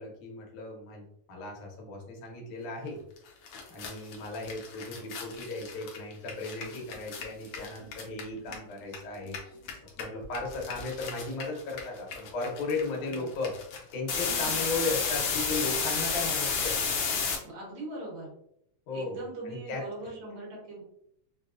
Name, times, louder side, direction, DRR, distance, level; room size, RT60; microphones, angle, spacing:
voice 1, 0.0-3.0 3.7-9.4 10.0-13.6 13.9-16.9 18.9-19.2 19.4-19.8, left 3 dB, 90° left, 0 dB, 2.4 m, -36 dB
sound 1, 3.2-3.3 3.5-9.0 9.2-17.4, left 5 dB, 75° left, 1.3 m, -32 dB
voice 2, 12.9-13.3 14.2-14.6 17.4-18.3 18.9-20.8, right 2 dB, 65° right, -4 dB, 2.5 m, -41 dB
5.7 x 2.3 x 2.4 m, 0.75 s
omnidirectional pair, 3.4 m